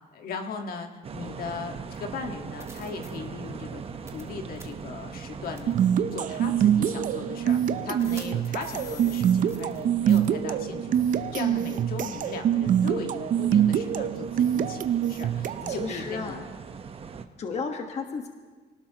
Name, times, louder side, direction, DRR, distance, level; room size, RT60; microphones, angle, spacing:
voice 1, 0.1-3.8 4.1-5.8 6.1-16.5, left 5 dB, 60° left, 4 dB, 1.7 m, -38 dB
sound 1, 1.0-17.3, right 6 dB, 35° right, 1.0 m, -41 dB
sound 2, 1.9-2.0 2.6-3.1 4.1-4.3 4.6-4.7 5.6-5.7 6.4-6.5 8.0-9.8 10.1-10.3, left 1 dB, 15° right, 1.6 m, -44 dB
sound 3, 5.7-15.9, right 9 dB, 50° right, 0.6 m, -25 dB
voice 2, 15.7-16.4 17.4-18.3, left 5 dB, 40° left, 4 dB, 1.4 m, -33 dB
25.0 x 18.5 x 3.0 m, 1.4 s
cardioid pair, 110°, 17 cm